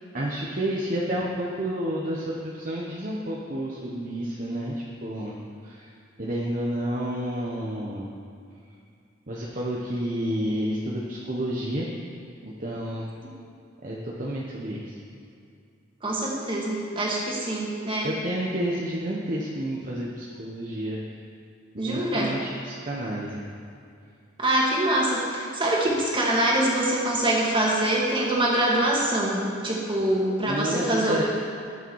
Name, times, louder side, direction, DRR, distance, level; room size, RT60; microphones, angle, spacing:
voice 1, 0.1-4.7 5.0-5.4 5.6-5.9 6.2-8.1 9.3-11.9 12.4-13.1 13.8-14.9 18.0-21.0 21.7-23.4 30.4-31.2, right 1 dB, 45° right, -4 dB, 1.1 m, -30 dB
voice 2, 16.0-18.1 21.8-22.4 24.4-31.2, right 1 dB, 25° right, -4 dB, 2.2 m, -24 dB
19.5 x 6.8 x 4.8 m, 2.3 s
head